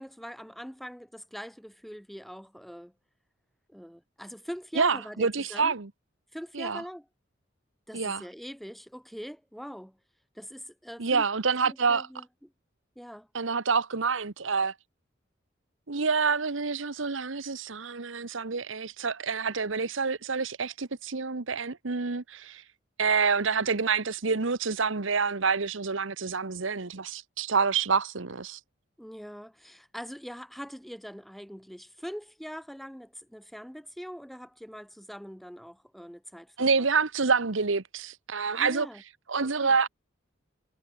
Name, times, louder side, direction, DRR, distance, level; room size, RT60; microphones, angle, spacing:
voice 1, 0.0-2.9 3.7-5.7 6.3-7.1 7.9-10.0 10.3-11.3 11.6-12.5 13.0-13.3 29.0-36.9 38.5-39.0 39.6-39.8, equal, ahead, 7.7 m, -42 dB
voice 2, 4.8-5.9 6.5-6.8 7.9-8.2 11.0-12.1 13.3-14.7 15.9-22.6 23.0-28.6 36.6-38.9 39.3-39.9, right 5 dB, 80° right, 1.1 m, -27 dB
head